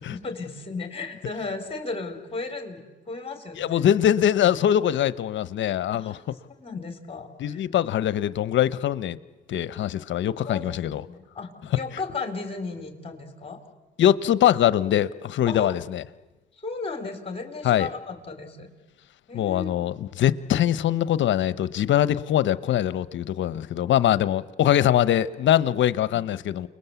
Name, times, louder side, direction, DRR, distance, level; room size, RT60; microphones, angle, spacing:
voice 1, 0.1-3.9 5.9-6.3 6.6-7.7 10.5-10.8 11.1-13.6 15.5-15.7 16.6-18.7 19.3-19.7 26.1-26.2, left 3 dB, 30° left, 5 dB, 4.6 m, -35 dB
voice 2, 3.6-6.2 7.4-9.2 9.5-11.0 14.0-16.0 17.6-17.9 19.3-26.7, left 11 dB, 70° left, 16 dB, 1.0 m, -22 dB
29.5 x 21.0 x 8.3 m, 1.2 s
cardioid pair, 90°, 20 cm